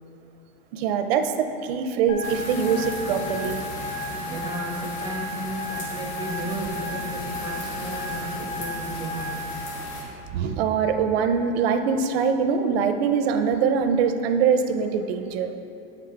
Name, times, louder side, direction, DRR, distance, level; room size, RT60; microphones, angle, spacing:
voice 1, 0.7-3.6 10.3-15.5, right 6 dB, 90° right, 7 dB, 0.6 m, -23 dB
sound 1, 2.1-9.7, left 1 dB, 85° left, 1.6 m, -34 dB
sound 2, 2.2-10.0, left 1 dB, 55° left, 1.4 m, -36 dB
voice 2, 4.1-9.4, right 1 dB, 15° right, -1 dB, 0.4 m, -34 dB
8.3 x 5.1 x 3.3 m, 2.8 s
supercardioid pair, 175°, 30 cm